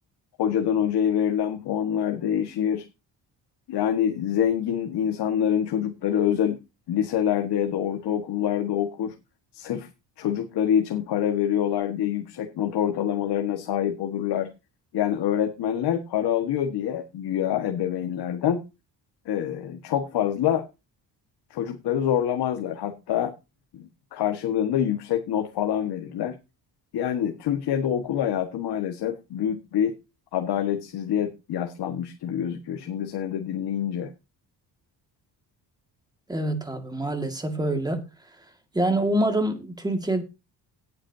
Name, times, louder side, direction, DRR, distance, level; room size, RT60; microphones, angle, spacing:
voice 1, 0.4-2.9 3.7-6.6 6.9-9.1 9.5-9.9 10.2-14.5 14.9-18.6 19.2-20.6 21.5-23.3 23.7-26.3 26.9-29.9 30.3-34.1, left 9 dB, 70° left, 1.7 m, -26 dB
voice 2, 36.3-38.0 38.7-40.2, right 1 dB, 10° right, 2.0 m, -25 dB
18.0 x 8.7 x 2.8 m
cardioid pair, 170°, 41 cm